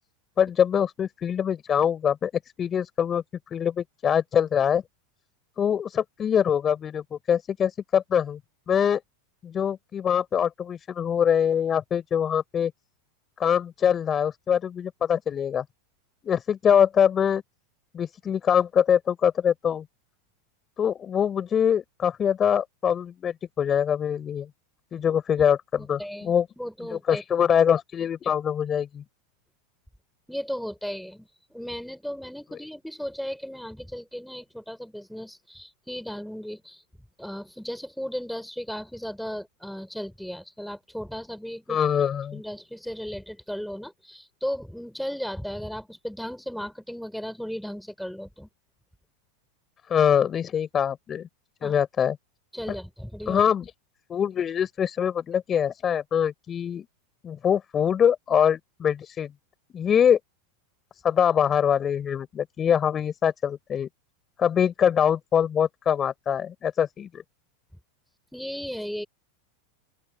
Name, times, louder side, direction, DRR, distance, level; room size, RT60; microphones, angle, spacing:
voice 1, 0.4-2.3 2.6-4.8 5.6-8.4 8.7-9.0 9.4-12.7 13.4-15.6 16.2-17.4 17.9-19.8 20.8-24.5 24.9-26.5 26.9-29.0 41.7-42.4 49.9-51.3 51.6-52.2 53.3-53.7 54.1-56.9 57.2-59.3 59.7-60.2 61.0-63.9 64.4-67.2, left 8 dB, 25° left, 5.2 m, -23 dB
voice 2, 25.8-27.2 30.3-36.8 37.2-41.8 42.3-48.5 51.6-51.7 52.5-53.4 68.3-69.0, equal, ahead, 4.4 m, -35 dB
open air
supercardioid pair, 120°, 0 cm